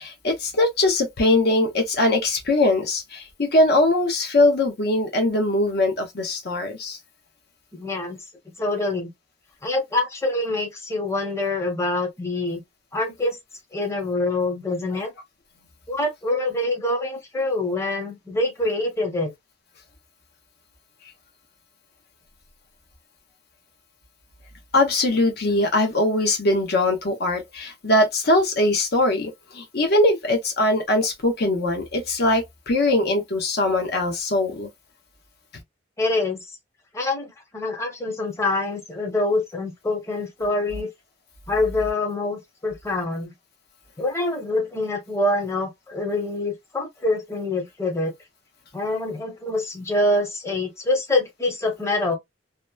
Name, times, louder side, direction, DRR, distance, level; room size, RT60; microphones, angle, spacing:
voice 1, 0.0-7.0 24.7-34.7, left 2 dB, 60° left, 0.8 m, -21 dB
voice 2, 7.7-8.2 8.6-9.1 9.6-12.6 12.9-13.4 13.7-15.1 15.9-19.3 36.0-36.4 36.9-40.9 41.5-43.3 44.0-48.1 48.7-52.2, left 2 dB, 15° left, 0.8 m, -25 dB
2.9 x 2.1 x 2.2 m
head